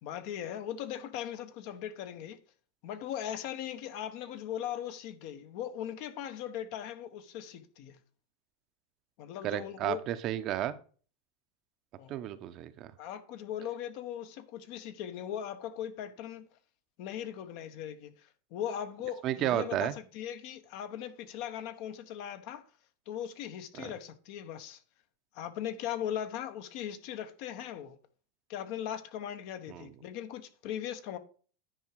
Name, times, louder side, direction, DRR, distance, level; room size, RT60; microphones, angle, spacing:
voice 1, 0.0-2.4 2.8-8.0 9.2-10.0 12.0-12.2 13.0-16.5 17.0-22.6 23.1-24.8 25.3-28.0 28.5-31.2, left 10 dB, 60° left, 1.0 m, -39 dB
voice 2, 9.4-10.7 12.1-12.9 19.2-19.9 23.8-23.9 29.7-29.8, right 12 dB, 45° right, 0.7 m, -32 dB
9.9 x 4.8 x 4.6 m
supercardioid pair, 120°, 0 cm